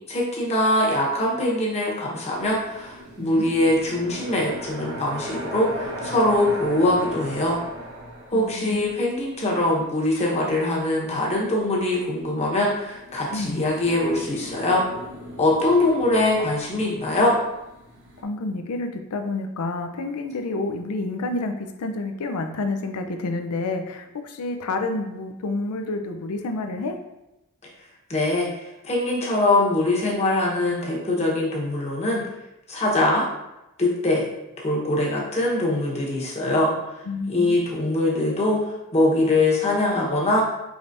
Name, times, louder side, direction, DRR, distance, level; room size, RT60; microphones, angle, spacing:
voice 1, 0.1-7.6 8.3-14.8 15.4-17.4 28.1-28.5 28.8-32.2 32.7-33.2 33.8-34.2 34.6-36.7 37.3-38.6 38.9-40.4, left 1 dB, 30° left, -4 dB, 1.0 m, -22 dB
sound 1, 2.3-11.7 12.5-18.2, right 1 dB, 60° right, 0.9 m, -39 dB
voice 2, 3.2-3.5 8.3-8.9 13.3-13.6 18.2-27.0 37.1-37.6, left 2 dB, 80° left, 6 dB, 0.5 m, -29 dB
4.9 x 3.3 x 2.6 m, 0.93 s
head